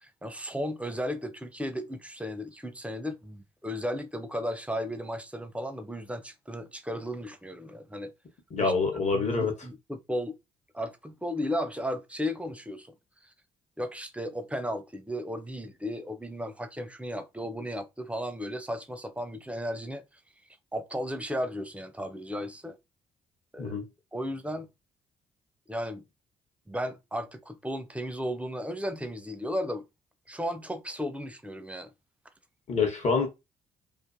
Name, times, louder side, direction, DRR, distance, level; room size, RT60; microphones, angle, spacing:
voice 1, 0.0-8.1 8.6-8.7 9.1-10.3 10.7-12.9 13.8-20.0 20.7-22.8 23.5-23.8 24.1-24.7 25.7-26.0 26.7-29.8 30.3-31.9, equal, 5° right, 0.5 m, -35 dB
voice 2, 8.5-9.5 23.6-23.9 32.7-33.3, left 4 dB, 45° left, 1.1 m, -26 dB
2.5 x 2.4 x 2.6 m
hypercardioid pair, 55°, 17 cm